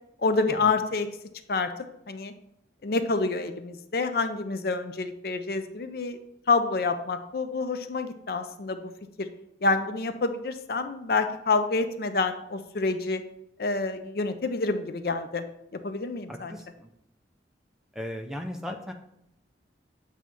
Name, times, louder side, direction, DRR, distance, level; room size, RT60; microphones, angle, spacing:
voice 1, 0.2-1.1 1.5-1.7 2.1-2.3 2.8-6.2 6.5-8.9 9.2-9.3 9.6-13.2 13.6-15.4 15.7-16.6, left 3 dB, 55° left, 9 dB, 0.5 m, -27 dB
voice 2, 16.3-16.9 17.9-18.9, equal, 5° right, 4 dB, 0.5 m, -37 dB
8.1 x 2.8 x 6.1 m, 0.79 s
head